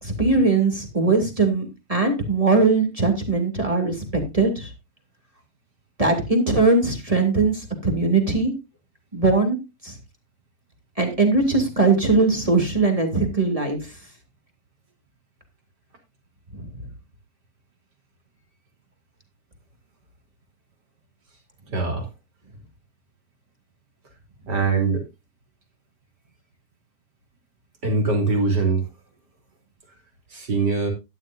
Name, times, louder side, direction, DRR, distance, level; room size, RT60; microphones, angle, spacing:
voice 1, 0.0-4.7 6.0-8.5 9.1-9.6 9.8-9.9 11.0-13.9 16.5-16.6, right 3 dB, 10° right, 4 dB, 2.1 m, -20 dB
voice 2, 21.7-22.1 24.5-25.0 27.8-28.9 30.3-30.9, right 4 dB, 30° right, 3 dB, 3.5 m, -22 dB
13.0 x 11.5 x 2.6 m, 0.24 s
omnidirectional pair, 3.9 m